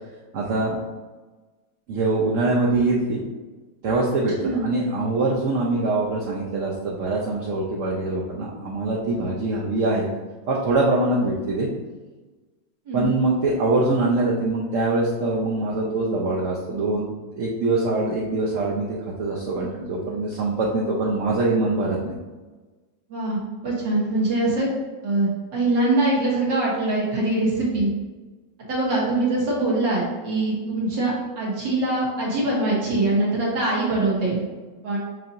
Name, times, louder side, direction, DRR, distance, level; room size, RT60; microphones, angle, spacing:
voice 1, 0.3-0.8 1.9-3.2 3.8-4.3 4.6-10.1 10.5-11.7 12.9-22.2, right 2 dB, 60° right, -4 dB, 0.9 m, -23 dB
voice 2, 23.6-24.7 25.0-27.9 28.7-34.4 34.8-35.0, right 2 dB, 85° right, -5 dB, 2.1 m, -23 dB
7.6 x 2.8 x 2.5 m, 1.3 s
omnidirectional pair, 1.9 m